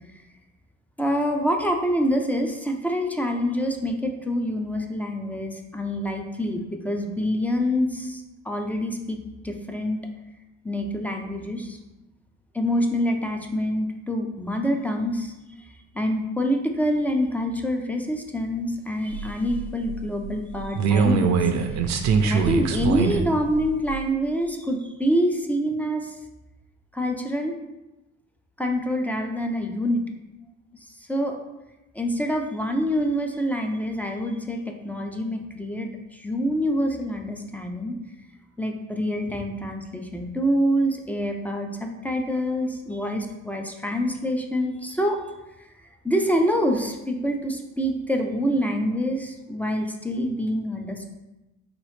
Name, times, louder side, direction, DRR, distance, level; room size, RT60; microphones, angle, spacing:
voice 1, 1.0-9.2 9.4-10.0 10.6-11.8 12.5-15.3 15.9-21.3 22.2-26.2 26.9-27.6 28.6-30.0 31.1-31.4 31.9-38.0 38.6-45.2 46.0-51.1, equal, 5° left, 3 dB, 0.4 m, -26 dB
sound 1, 19.1-23.3 23.5-24.0, right 5 dB, 65° right, 0.5 m, -23 dB
3.9 x 3.0 x 3.2 m, 1.0 s
cardioid pair, 90°, 30 cm